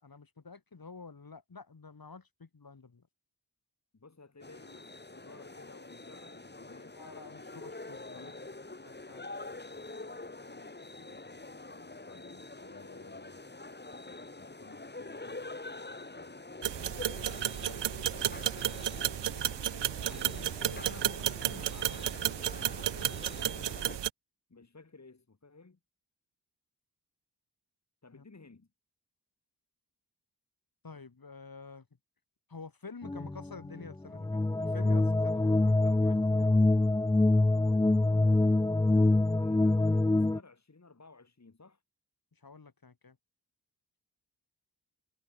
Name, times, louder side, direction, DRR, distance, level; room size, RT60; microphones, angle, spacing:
voice 1, 0.0-3.1 7.0-8.3 8.8-9.3 28.1-28.2 30.8-31.9 32.5-36.6 42.3-43.2, left 4 dB, 55° left, 4.5 m, -49 dB
voice 2, 3.9-7.0 7.5-8.4 10.5-13.5 13.9-15.5 16.1-19.0 20.0-23.7 24.5-25.8 28.0-28.7 39.3-41.8, left 3 dB, 40° left, 3.5 m, -55 dB
sound 1, 4.4-24.0, left 2 dB, 25° left, 2.2 m, -46 dB
sound 2, 16.6-24.1, right 11 dB, 90° right, 0.7 m, -33 dB
sound 3, 33.0-40.4, left 2 dB, 10° left, 0.4 m, -25 dB
cardioid pair, 50°, 41 cm